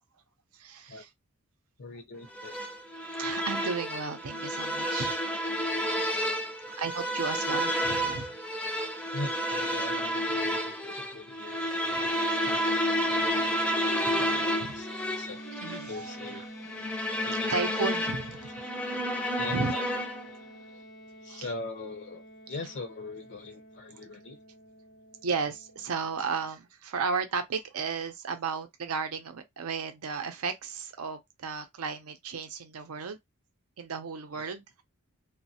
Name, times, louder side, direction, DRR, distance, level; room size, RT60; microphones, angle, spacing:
voice 1, 0.5-1.1 3.2-5.2 5.8-6.3 6.7-8.9 12.5-12.7 13.7-14.8 15.1-15.3 15.6-16.5 17.5-18.5 19.4-19.7 21.3-21.5 25.2-33.2 33.8-34.6, right 5 dB, 85° right, 0.6 m, -35 dB
voice 2, 1.8-2.5 9.1-13.5 14.2-15.4 15.8-16.9 17.2-17.5 19.4-19.9 21.2-22.2 22.5-24.4 34.3-34.4, left 3 dB, 55° left, 0.5 m, -42 dB
sound 1, 2.3-20.4, equal, 5° left, 0.5 m, -30 dB
sound 2, 12.1-26.5, equal, 80° left, 0.8 m, -47 dB
3.0 x 2.1 x 2.7 m
head